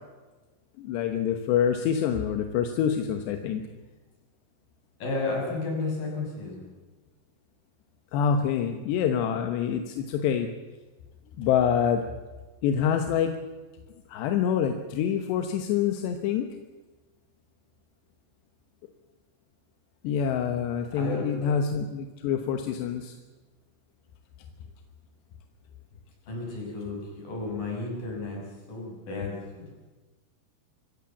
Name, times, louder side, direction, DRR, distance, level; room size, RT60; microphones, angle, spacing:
voice 1, 0.8-3.6 8.1-10.5 11.4-12.0 12.6-13.4 14.1-16.5 20.0-23.2, left 8 dB, 70° left, 6 dB, 2.9 m, -26 dB
voice 2, 5.0-6.7 20.9-21.5 26.3-28.4 28.7-29.7, left 3 dB, 45° left, -1 dB, 7.9 m, -33 dB
25.0 x 16.5 x 7.2 m, 1.2 s
omnidirectional pair, 5.8 m